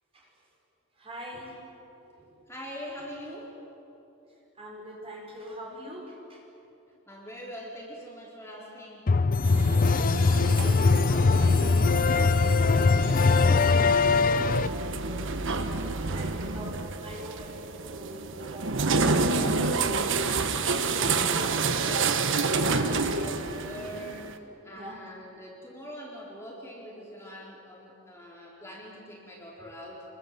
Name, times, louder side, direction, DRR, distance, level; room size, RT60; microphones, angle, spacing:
voice 1, 1.0-1.6 2.0-2.5 4.3-6.4 9.9-10.3 13.0-15.4 16.1-19.7 24.6-25.0, equal, 25° right, -1 dB, 5.2 m, -44 dB
voice 2, 2.5-3.6 7.1-9.1 9.7-10.5 11.1-11.8 20.2-30.0, equal, 10° left, -4 dB, 4.2 m, -43 dB
sound 1, 9.1-14.7, left 4 dB, 40° left, 0.5 m, -21 dB
sound 2, 9.4-24.4, right 4 dB, 55° right, 1.3 m, -29 dB
29.5 x 23.0 x 7.7 m, 2.9 s
head